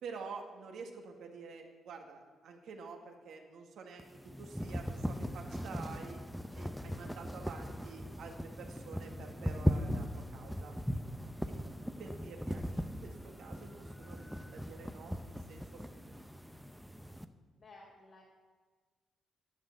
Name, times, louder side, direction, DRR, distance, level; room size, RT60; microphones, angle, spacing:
voice 1, 0.0-6.2 6.6-10.8 11.5-11.6 12.0-16.2, right 5 dB, 75° right, 2 dB, 1.9 m, -49 dB
sound 1, 4.0-17.3, equal, ahead, 0.7 m, -39 dB
voice 2, 17.6-18.2, left 2 dB, 50° left, -4 dB, 2.7 m, -55 dB
11.0 x 6.6 x 9.3 m, 1.5 s
cardioid pair, 90°, 0 cm